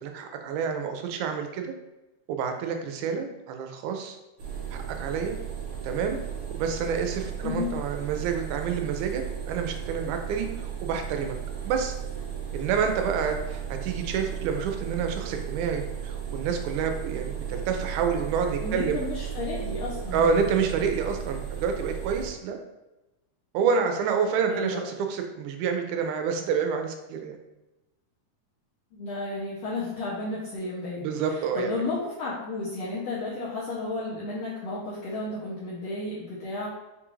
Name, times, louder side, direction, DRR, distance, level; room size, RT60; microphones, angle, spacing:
voice 1, 0.0-1.7 2.3-4.2 4.7-5.4 5.8-6.2 6.5-11.4 11.7-12.0 12.5-19.0 20.1-22.6 23.5-27.4 31.0-31.7, right 6 dB, 80° right, 5 dB, 1.9 m, -28 dB
sound 1, 4.4-22.3, right 8 dB, 65° right, 2.0 m, -35 dB
voice 2, 18.6-20.3 24.5-24.8 28.9-36.7, left 2 dB, 75° left, -7 dB, 1.5 m, -33 dB
5.4 x 2.4 x 3.0 m, 0.99 s
omnidirectional pair, 3.7 m